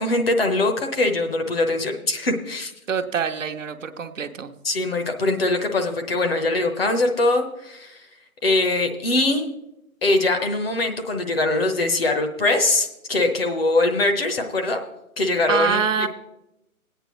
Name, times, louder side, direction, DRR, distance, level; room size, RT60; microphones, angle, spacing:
voice 1, 0.0-2.7 4.6-8.0 8.4-9.5 10.0-14.8 15.2-16.1, left 2 dB, 45° left, 5 dB, 1.0 m, -22 dB
voice 2, 2.9-4.5 15.5-16.1, right 6 dB, 60° right, 7 dB, 0.8 m, -25 dB
17.0 x 9.0 x 3.1 m, 0.90 s
hypercardioid pair, 175°, 42 cm